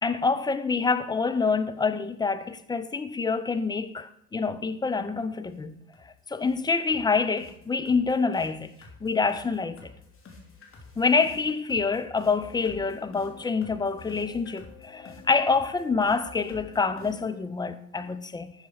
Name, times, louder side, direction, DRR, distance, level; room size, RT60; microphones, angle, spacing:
voice 1, 0.0-5.8 6.3-9.9 11.0-18.5, left 4 dB, 10° left, 0.4 m, -26 dB
sound 1, 5.0-5.1 5.5-5.6 5.9-6.1 6.4-17.4, left 5 dB, 30° left, 2.9 m, -49 dB
11.5 x 6.7 x 4.7 m
hypercardioid pair, 75°, 46 cm